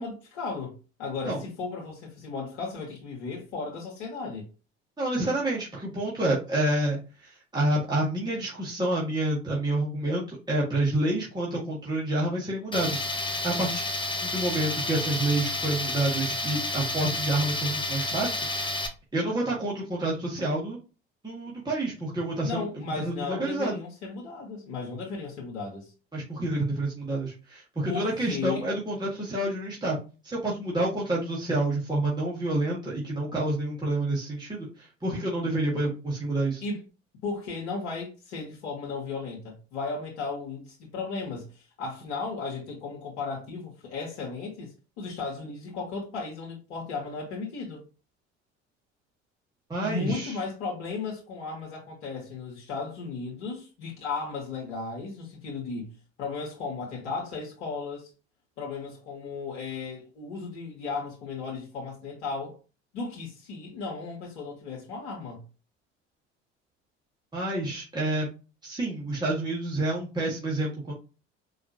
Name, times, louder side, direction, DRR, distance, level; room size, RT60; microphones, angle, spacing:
voice 1, 0.0-4.4 22.4-25.9 27.9-28.7 36.6-36.8 37.2-47.8 49.8-58.1 58.6-62.6 62.9-65.4, left 4 dB, 70° left, 1.5 m, -35 dB
voice 2, 5.0-13.8 14.2-18.4 19.1-20.8 21.2-23.8 26.1-30.0 30.2-36.6 49.7-50.4 67.3-68.3 68.6-70.9, right 1 dB, 10° right, 1.9 m, -28 dB
Tools, 12.7-18.9, left 2 dB, 15° left, 0.9 m, -30 dB
4.9 x 3.1 x 2.8 m
figure-of-eight pair, 60°, 34 cm